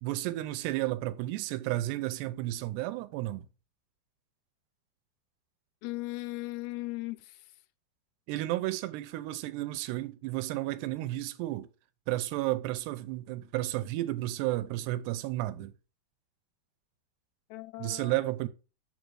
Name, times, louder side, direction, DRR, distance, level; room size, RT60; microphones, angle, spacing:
voice 1, 0.0-3.5 8.3-11.7 12.1-15.7 17.8-18.5, right 16 dB, 85° right, 2.8 m, -32 dB
voice 2, 5.8-7.4 17.5-18.2, left 20 dB, 85° left, 2.7 m, -37 dB
6.6 x 5.2 x 6.2 m
omnidirectional pair, 4.8 m